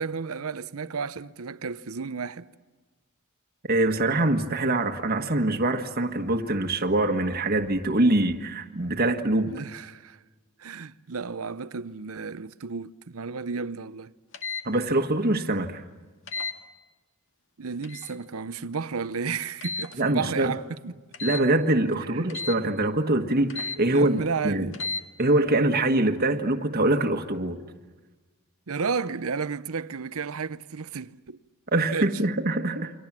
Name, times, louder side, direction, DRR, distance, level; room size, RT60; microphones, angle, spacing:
voice 1, 0.0-2.5 9.5-10.2 10.6-14.1 17.6-20.9 22.1-22.4 23.9-24.8 28.7-31.4 31.9-32.2, right 5 dB, 70° right, 0.7 m, -32 dB
voice 2, 3.6-9.5 14.6-15.8 20.0-20.5 21.2-24.2 24.4-24.7 25.2-27.6 31.7-32.9, right 2 dB, 45° right, 1.5 m, -24 dB
sound 1, 14.3-14.6 16.3-16.6 17.8-18.1 19.6-19.9 21.1-21.5 22.3-22.6 23.5-23.8 24.7-25.0, left 4 dB, 60° left, 1.8 m, -33 dB
29.5 x 24.0 x 7.4 m
head